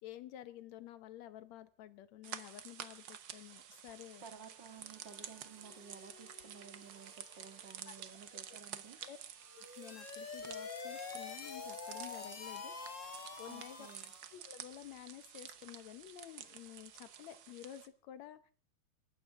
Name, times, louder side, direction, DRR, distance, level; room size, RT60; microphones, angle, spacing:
voice 1, 0.0-4.2 7.9-8.0 8.3-8.6 9.0-9.2 9.6-12.7 13.4-13.9 14.3-18.5, left 12 dB, 75° left, 13 dB, 2.1 m, -51 dB
sound 1, 2.2-17.9, right 9 dB, 65° right, 1.2 m, -51 dB
voice 2, 4.2-9.0 13.5-14.1, right 6 dB, 45° right, 7 dB, 2.3 m, -54 dB
Harmonica, 4.7-11.6, left 4 dB, 20° left, 4.4 m, -66 dB
sound 2, 9.5-14.3, left 5 dB, 40° left, 1.2 m, -46 dB
28.0 x 13.5 x 3.6 m, 0.40 s
omnidirectional pair, 3.3 m